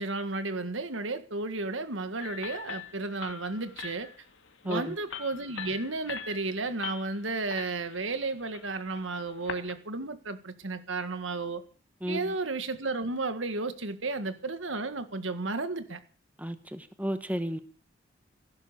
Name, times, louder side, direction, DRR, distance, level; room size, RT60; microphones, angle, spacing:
voice 1, 0.0-4.1 4.6-11.6 12.1-16.0, right 3 dB, 80° right, 1.8 m, -33 dB
sound 1, 2.2-9.7, left 7 dB, 80° left, 2.2 m, -43 dB
voice 2, 12.0-12.3 16.4-17.6, equal, 10° right, 1.1 m, -33 dB
16.5 x 11.5 x 7.0 m
head